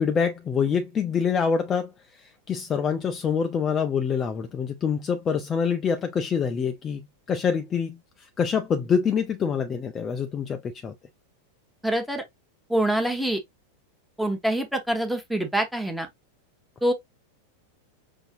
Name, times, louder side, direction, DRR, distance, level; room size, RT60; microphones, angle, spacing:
voice 1, 0.0-7.0 7.3-10.9, left 6 dB, 25° left, 0.4 m, -26 dB
voice 2, 11.8-12.2 12.7-13.4 14.2-16.1 16.8-16.9, right 1 dB, ahead, 1.0 m, -25 dB
5.4 x 2.7 x 2.5 m
figure-of-eight pair, 90°, 0 cm